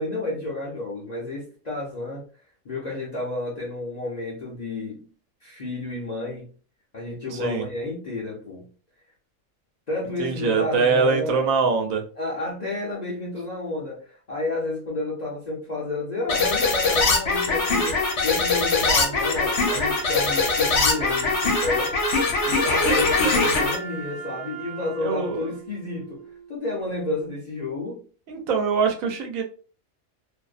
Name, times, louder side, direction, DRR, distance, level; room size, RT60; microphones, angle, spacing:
voice 1, 0.0-2.2 2.6-5.1 5.4-6.5 6.9-8.7 9.9-11.4 12.2-21.9 22.4-26.2 26.5-28.0, left 2 dB, 45° left, 0.6 m, -31 dB
voice 2, 7.3-7.6 10.2-12.0 25.0-25.5 28.3-29.4, right 5 dB, 80° right, 1.0 m, -23 dB
sound 1, 16.3-23.8, left 3 dB, 65° left, 1.0 m, -22 dB
Wind instrument woodwind instrument, 17.9-26.9, right 7 dB, 50° right, 0.4 m, -39 dB
2.6 x 2.0 x 2.4 m
omnidirectional pair, 1.4 m